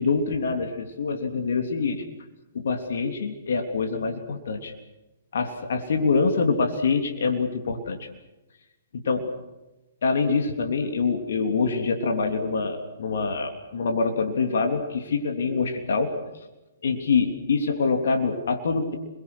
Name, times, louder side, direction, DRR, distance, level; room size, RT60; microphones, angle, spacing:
voice 1, 0.0-2.0 2.5-4.7 5.3-8.1 8.9-9.3 10.0-16.2 16.8-19.0, left 4 dB, 65° left, 5 dB, 3.4 m, -25 dB
29.5 x 22.5 x 6.3 m, 1.0 s
hypercardioid pair, 125°, 0 cm